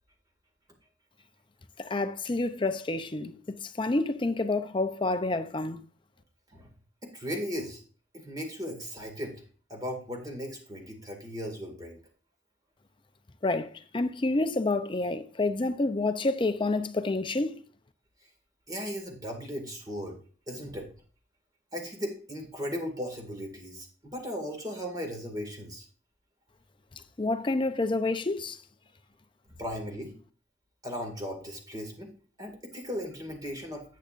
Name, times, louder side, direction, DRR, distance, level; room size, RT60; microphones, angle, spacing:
voice 1, 1.8-5.8 13.4-17.6 27.2-28.6, left 2 dB, 25° left, 0.6 m, -28 dB
voice 2, 7.0-7.8 8.1-9.4 9.7-12.0 18.7-20.2 20.5-20.9 21.7-25.8 29.6-30.1 30.8-32.1 32.4-33.8, equal, 20° right, 2.1 m, -37 dB
10.5 x 8.5 x 2.5 m
head